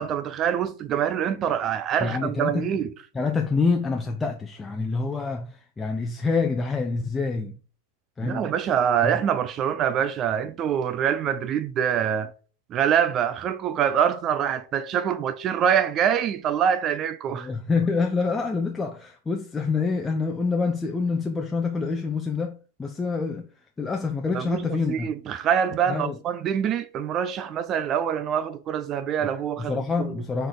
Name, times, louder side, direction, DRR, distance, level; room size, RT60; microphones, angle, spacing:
voice 1, 0.0-2.9 8.2-12.3 12.7-17.5 24.3-30.1, right 8 dB, 30° right, 0.6 m, -25 dB
voice 2, 2.0-2.7 3.1-7.6 8.2-8.5 9.0-9.2 17.3-23.5 23.8-25.1 25.9-26.2 29.2-29.3 29.6-30.5, left 4 dB, 15° left, 0.7 m, -26 dB
6.3 x 4.5 x 5.0 m
figure-of-eight pair, 90°, 0 cm